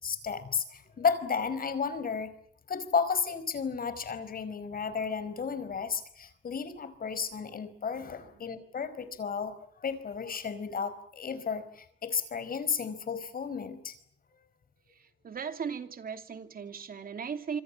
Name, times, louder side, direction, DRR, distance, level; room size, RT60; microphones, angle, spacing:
voice 1, 0.0-2.3 2.7-13.9, left 6 dB, 45° left, 13 dB, 4.9 m, -33 dB
voice 2, 14.9-17.6, right 6 dB, 45° right, 8 dB, 2.9 m, -38 dB
27.0 x 26.0 x 7.3 m, 0.63 s
cardioid pair, 90°, 20 cm